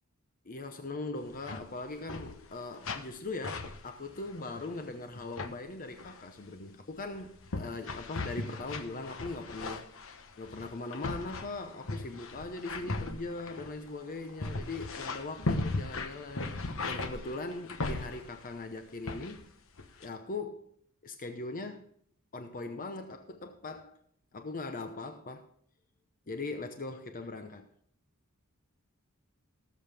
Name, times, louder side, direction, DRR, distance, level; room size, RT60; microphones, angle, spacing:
voice 1, 0.4-9.9 10.4-16.5 16.9-19.4 20.0-20.6 21.0-21.9 22.3-24.0 24.3-25.5 26.3-27.6, left 3 dB, 40° left, 0.9 m, -40 dB
sound 1, 1.2-1.6 1.9-2.5 2.8-3.2 3.4-4.8 5.1-5.5 6.0-6.3 6.9-18.5 19.1-19.5 19.8-20.1, left 2 dB, 65° left, 1.1 m, -38 dB
19.0 x 7.3 x 3.5 m
head